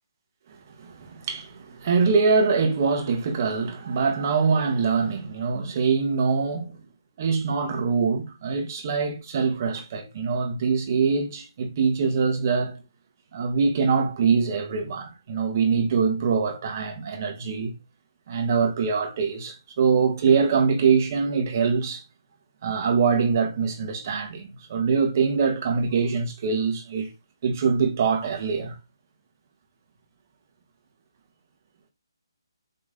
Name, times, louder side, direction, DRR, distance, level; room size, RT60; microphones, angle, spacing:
voice 1, 0.5-6.8 7.2-12.8 13.3-17.7 18.3-22.0 22.6-27.1 27.4-28.8, right 5 dB, 40° right, 1.7 m, -24 dB
7.9 x 3.8 x 3.9 m
hypercardioid pair, 155°, 3 cm